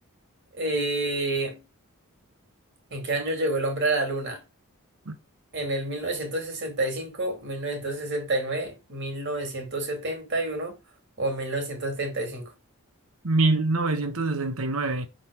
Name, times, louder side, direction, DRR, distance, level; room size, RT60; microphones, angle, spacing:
voice 1, 0.6-1.6 2.9-4.4 5.5-10.8 11.2-12.5, right 2 dB, 50° right, 2.3 m, -29 dB
voice 2, 13.2-15.1, right 2 dB, 70° right, 1.1 m, -24 dB
6.1 x 3.9 x 4.9 m
head